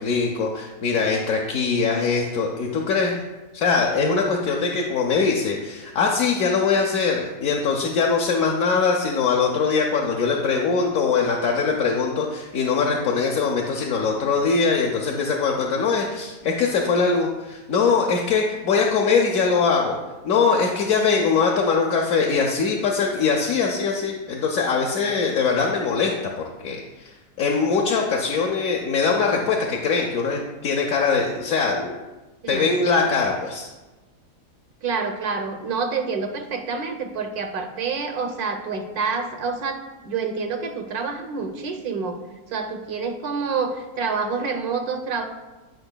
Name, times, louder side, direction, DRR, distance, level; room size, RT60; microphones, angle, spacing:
voice 1, 0.0-3.2 3.5-20.0 20.2-27.1 27.4-32.0 32.5-33.7, left 5 dB, 65° left, 0 dB, 1.0 m, -22 dB
voice 2, 34.8-42.2 42.5-45.2, right 5 dB, 70° right, 6 dB, 1.2 m, -27 dB
10.5 x 5.5 x 2.2 m, 1.2 s
omnidirectional pair, 1.7 m